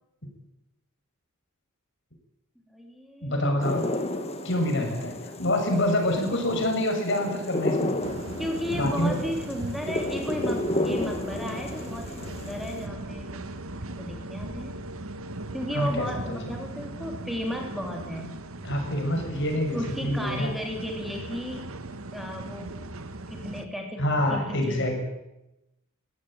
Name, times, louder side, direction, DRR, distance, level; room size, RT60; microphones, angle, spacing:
voice 1, 2.7-3.6 6.3-6.4 8.4-13.4 14.0-14.7 15.5-18.3 19.7-21.7 22.1-22.7 23.3-25.0, equal, ahead, 1 dB, 3.4 m, -34 dB
voice 2, 3.2-3.8 4.4-8.0 8.7-9.2 15.7-16.4 18.6-20.5 24.0-25.0, left 1 dB, 60° left, 3 dB, 6.4 m, -26 dB
sound 1, 3.6-12.9, left 1 dB, 30° left, 2.0 m, -32 dB
sound 2, 8.0-23.6, right 2 dB, 80° right, 1.6 m, -38 dB
22.5 x 16.5 x 9.0 m, 0.93 s
head